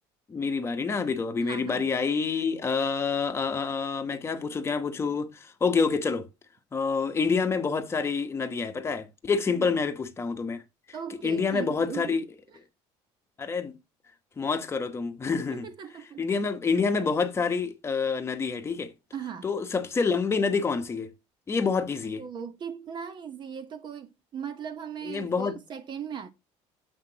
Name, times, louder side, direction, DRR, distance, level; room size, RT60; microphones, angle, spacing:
voice 1, 0.3-6.3 6.7-10.6 11.2-12.2 13.4-13.8 14.4-15.7 16.2-18.9 19.4-21.1 21.5-22.2 25.1-25.5, left 5 dB, 20° left, 1.0 m, -27 dB
voice 2, 1.3-1.9 9.5-9.7 10.9-12.2 15.4-16.3 19.1-19.5 22.1-26.3, right 7 dB, 40° right, 0.9 m, -38 dB
7.2 x 5.9 x 2.8 m
cardioid pair, 135°, 12 cm